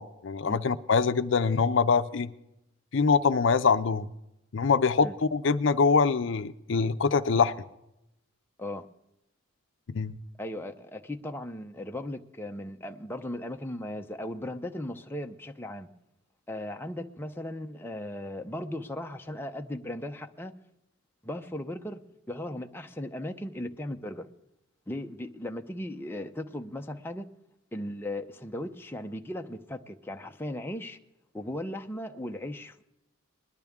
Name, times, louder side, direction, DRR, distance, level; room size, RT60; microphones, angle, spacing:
voice 1, 0.0-2.3 2.9-4.1 4.5-7.5 9.9-10.1, left 5 dB, 65° left, 0.5 m, -24 dB
voice 2, 10.4-15.9 16.5-20.5 21.2-24.3 24.9-27.3 27.7-31.0 31.3-32.8, left 1 dB, 10° left, 0.6 m, -37 dB
20.5 x 12.0 x 3.6 m
head